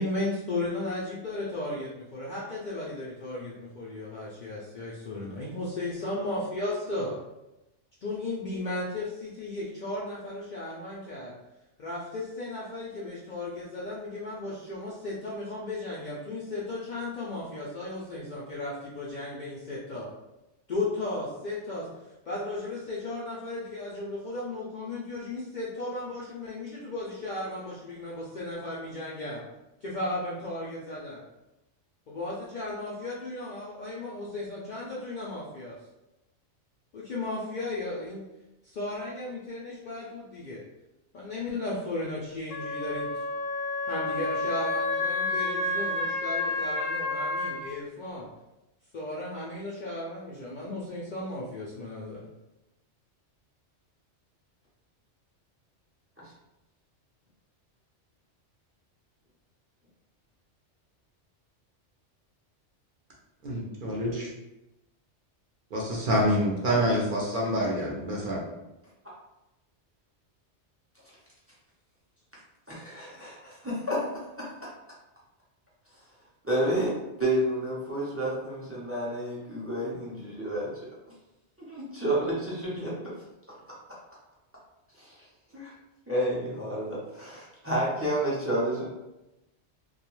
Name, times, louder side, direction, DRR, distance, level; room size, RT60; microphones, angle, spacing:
voice 1, 0.0-7.2 8.0-11.3 11.8-20.1 20.7-21.9 22.3-29.4 29.8-31.2 32.1-35.8 36.9-38.2 38.6-40.6 41.1-43.1 43.8-48.3 48.9-52.3, left 2 dB, 60° left, -6 dB, 0.5 m, -35 dB
Wind instrument woodwind instrument, 42.5-47.6, left 2 dB, 80° left, 0.9 m, -30 dB
voice 2, 63.4-64.3 65.7-68.4, equal, 55° right, -4 dB, 0.7 m, -27 dB
voice 3, 72.7-74.5 76.4-80.7 81.7-82.9 83.5-83.6 85.0-85.3 85.5-85.7 86.1-88.9, right 1 dB, 20° right, -7 dB, 0.4 m, -30 dB
2.3 x 2.2 x 3.0 m, 0.95 s
omnidirectional pair, 1.2 m